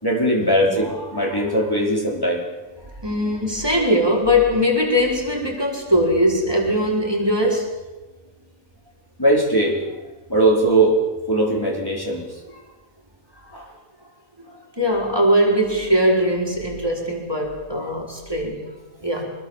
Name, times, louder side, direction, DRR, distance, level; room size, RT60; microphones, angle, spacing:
voice 1, 0.0-2.4 9.2-9.8 10.3-11.0 11.3-12.6 13.5-13.7, right 1 dB, 15° left, 0 dB, 4.7 m, -20 dB
voice 2, 3.0-7.7 14.8-18.7 19.0-19.3, equal, 15° right, -1 dB, 5.0 m, -20 dB
25.5 x 20.5 x 7.6 m, 1.1 s
omnidirectional pair, 1.5 m